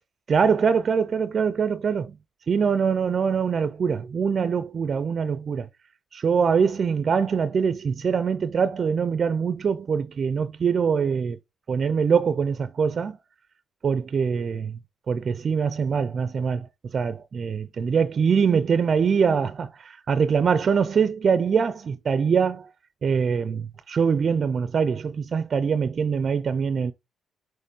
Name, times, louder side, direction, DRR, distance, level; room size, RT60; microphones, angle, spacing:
voice 1, 0.3-2.2 2.5-5.7 6.1-11.4 11.7-13.2 13.8-14.8 15.1-16.7 16.9-22.7 23.0-26.9, right 6 dB, 45° right, 0.5 m, -23 dB
6.6 x 3.1 x 5.4 m
cardioid pair, 90°, 0 cm